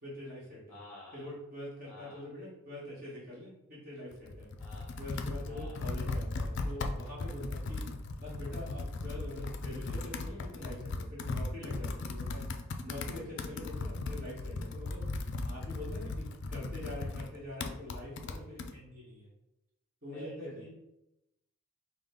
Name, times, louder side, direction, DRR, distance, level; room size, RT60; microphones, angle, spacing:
voice 1, 0.0-0.8 1.1-4.5 5.0-7.8 8.2-12.4 12.8-15.0 15.4-19.3 20.0-20.7, left 1 dB, 45° right, -7 dB, 1.4 m, -44 dB
voice 2, 0.7-1.3 1.9-2.3 4.6-5.0 5.4-5.8 13.1-13.2 20.1-20.7, left 1 dB, 10° left, -4 dB, 0.6 m, -49 dB
Computer keyboard, 4.1-18.7, left 2 dB, 55° left, 0.4 m, -37 dB
5.0 x 2.2 x 3.7 m, 0.89 s
head